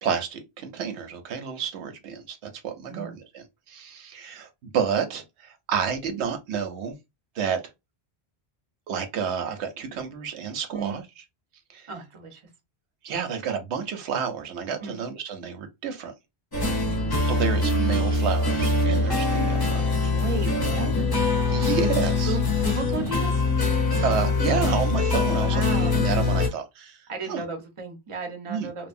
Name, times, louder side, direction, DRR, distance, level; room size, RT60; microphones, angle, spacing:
voice 1, 0.0-6.9 7.4-7.6 8.9-11.0 11.7-11.9 13.0-16.1 17.2-20.1 21.5-22.4 23.8-27.0 27.3-27.4 28.5-28.7, right 7 dB, 85° right, 0.9 m, -30 dB
voice 2, 11.9-12.4 14.8-15.0 16.8-17.2 20.0-20.9 22.2-23.4 25.3-26.0 27.1-28.9, right 3 dB, 35° right, 0.7 m, -34 dB
sound 1, 16.5-26.5, left 3 dB, 25° left, 0.6 m, -23 dB
2.8 x 2.1 x 2.5 m
omnidirectional pair, 1.1 m